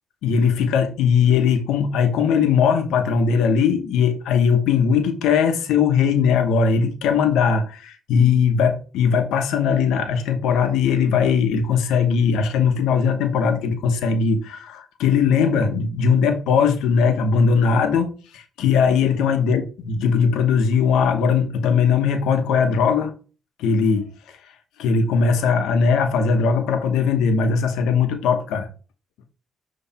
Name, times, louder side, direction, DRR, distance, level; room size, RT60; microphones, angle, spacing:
voice 1, 0.2-23.1 23.6-24.1 24.8-28.7, left 6 dB, 90° left, 1.0 m, -19 dB
7.5 x 3.1 x 4.2 m
cardioid pair, 90°, 0 cm